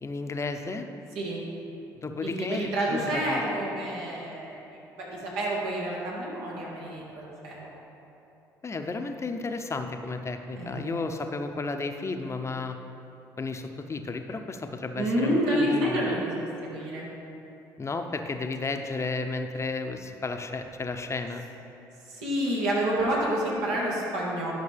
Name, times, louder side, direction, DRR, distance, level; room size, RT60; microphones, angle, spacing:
voice 1, 0.0-0.9 2.0-3.4 8.6-12.8 13.4-16.1 17.8-21.4, left 3 dB, 30° left, 6 dB, 0.7 m, -33 dB
voice 2, 1.2-1.5 2.2-7.7 10.6-11.2 14.9-16.3 16.6-17.1 22.1-24.5, right 1 dB, 80° right, -5 dB, 1.8 m, -29 dB
11.0 x 6.0 x 3.5 m, 2.9 s
hypercardioid pair, 55°, 9 cm